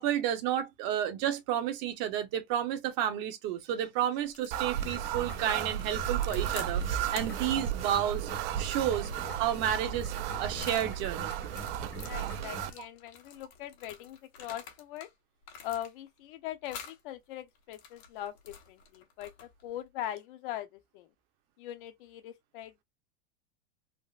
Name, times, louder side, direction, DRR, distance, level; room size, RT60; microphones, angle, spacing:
voice 1, 0.0-8.3 8.6-9.1 9.4-11.4, right 10 dB, 45° right, 0.8 m, -31 dB
sound 1, 4.2-4.6 5.5-6.7 7.1-10.9 11.4-15.1 15.4-16.2 16.7-17.0 17.5-19.7, left 7 dB, 90° left, 1.2 m, -49 dB
sound 2, 4.5-12.7, right 10 dB, 65° right, 0.5 m, -34 dB
sound 3, 4.8-12.8, left 1 dB, 5° left, 0.4 m, -47 dB
voice 2, 12.0-15.1 15.6-21.1 21.6-22.8, left 12 dB, 60° left, 0.7 m, -41 dB
3.6 x 2.0 x 2.4 m
supercardioid pair, 155°, 31 cm